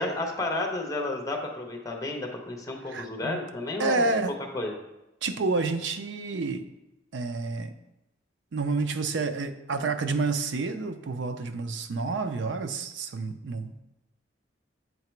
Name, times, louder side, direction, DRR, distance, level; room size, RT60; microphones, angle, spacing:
voice 1, 0.0-4.1 4.5-4.7, left 2 dB, 20° left, 2 dB, 0.9 m, -31 dB
voice 2, 2.9-3.4 3.8-4.3 5.2-6.6 7.1-7.7 8.5-13.8, right 3 dB, 80° right, 8 dB, 0.5 m, -29 dB
7.8 x 2.9 x 4.5 m, 0.93 s
head